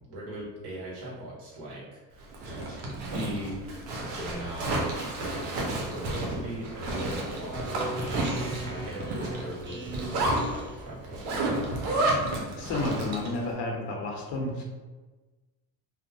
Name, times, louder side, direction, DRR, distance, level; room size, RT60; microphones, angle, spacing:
voice 1, 0.0-7.7 8.0-11.6, right 1 dB, 55° right, -5 dB, 1.5 m, -40 dB
Zipper (clothing), 2.2-13.4, right 2 dB, 90° right, 0.7 m, -31 dB
Speech synthesizer, 7.5-10.8, right 1 dB, 25° right, 1.2 m, -38 dB
voice 2, 12.5-14.6, left 2 dB, 60° left, 0 dB, 0.8 m, -31 dB
2.7 x 2.1 x 2.8 m, 1.2 s
supercardioid pair, 75°, 47 cm